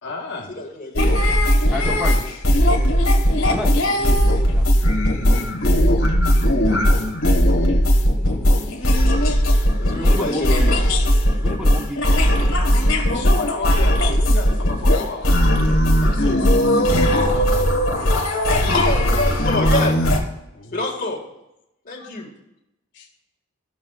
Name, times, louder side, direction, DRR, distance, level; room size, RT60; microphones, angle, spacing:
voice 1, 0.0-0.5 3.4-3.5 6.8-6.9 13.1-15.4 16.0-17.7 19.5-19.9 20.5-20.8 22.0-22.1 22.9-23.1, left 3 dB, 55° left, 0 dB, 0.9 m, -32 dB
voice 2, 0.5-1.3 9.8-10.8 18.6-19.9 20.7-21.2 21.8-22.3, left 1 dB, 40° left, -1 dB, 1.8 m, -26 dB
sound 1, 1.0-20.2, equal, 75° left, 1.6 m, -18 dB
voice 3, 1.7-2.2 3.4-4.7 8.2-8.5 9.9-10.6 11.4-12.9, left 1 dB, 5° right, -1 dB, 1.1 m, -31 dB
16.0 x 6.1 x 2.4 m, 0.87 s
head